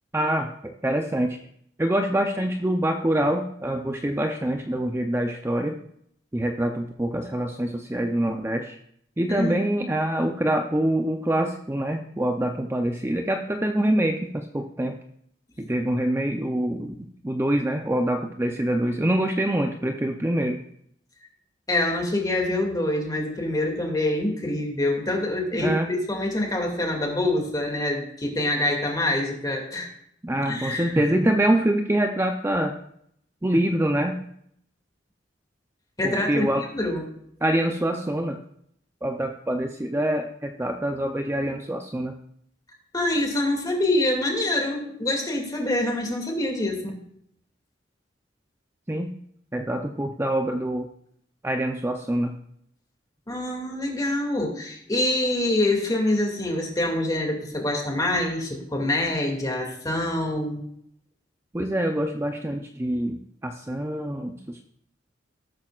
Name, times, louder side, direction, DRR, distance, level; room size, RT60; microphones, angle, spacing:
voice 1, 0.1-1.4 1.8-5.8 6.3-8.8 9.2-14.9 15.6-20.6 25.5-25.9 30.2-32.7 33.4-34.2 36.0-36.6 37.4-38.4 39.0-42.1 48.9-49.1 49.5-50.9 51.4-52.3 61.5-64.7, right 1 dB, 15° right, 4 dB, 0.6 m, -25 dB
voice 2, 21.7-29.9 30.5-31.0 36.0-37.0 42.9-47.0 53.3-60.7, left 1 dB, 20° left, 1 dB, 2.3 m, -25 dB
18.5 x 8.8 x 2.4 m, 0.70 s
head